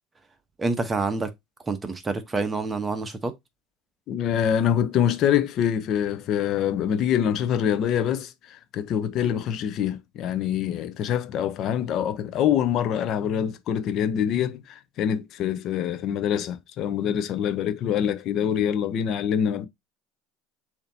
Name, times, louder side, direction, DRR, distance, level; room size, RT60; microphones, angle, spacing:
voice 1, 0.6-1.3 1.7-3.3, right 3 dB, 20° right, 1.0 m, -27 dB
voice 2, 4.1-19.7, left 9 dB, 55° left, 0.7 m, -25 dB
6.7 x 2.9 x 2.7 m
supercardioid pair, 90°, 0 cm